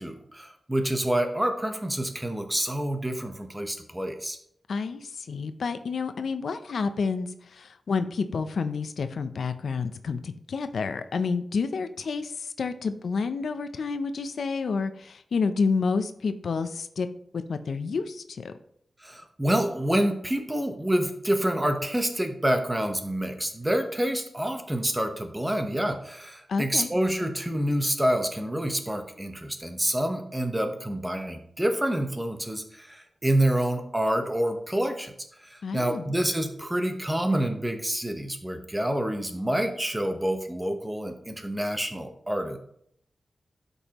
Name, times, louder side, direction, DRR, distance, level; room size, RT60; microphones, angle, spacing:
voice 1, 0.0-4.4 19.0-35.1 35.4-42.6, right 1 dB, 10° right, 6 dB, 1.0 m, -27 dB
voice 2, 4.7-17.1 17.5-18.5 26.5-26.9 35.6-36.1, left 4 dB, 80° left, 10 dB, 0.5 m, -29 dB
12.5 x 5.4 x 3.0 m, 0.70 s
wide cardioid pair, 95°, 0 cm